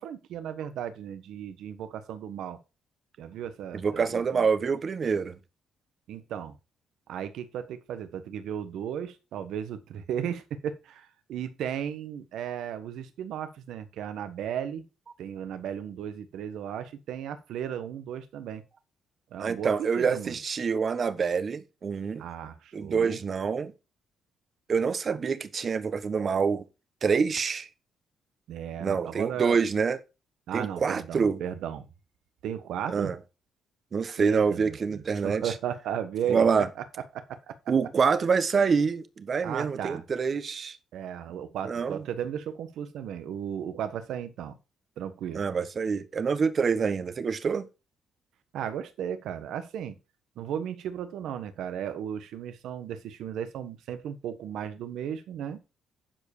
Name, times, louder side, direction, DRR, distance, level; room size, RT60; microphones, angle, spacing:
voice 1, 0.0-2.6 3.2-4.7 6.1-6.5 7.1-14.8 15.2-18.6 19.3-20.4 22.2-23.2 28.5-29.6 30.5-31.9 32.4-33.1 34.2-36.7 37.1-37.6 39.4-40.0 40.9-44.6 45.0-45.4 48.5-49.9 50.4-55.6, right 9 dB, 80° right, 1.3 m, -35 dB
voice 2, 3.7-5.4 19.4-22.2 22.7-23.7 24.7-26.6 27.0-27.7 28.8-30.0 30.5-31.4 32.9-33.2 33.9-35.5 36.3-36.7 37.7-40.8 41.6-42.0 45.3-47.7, right 5 dB, 45° right, 1.1 m, -26 dB
11.5 x 5.1 x 4.9 m
cardioid pair, 90°, 0 cm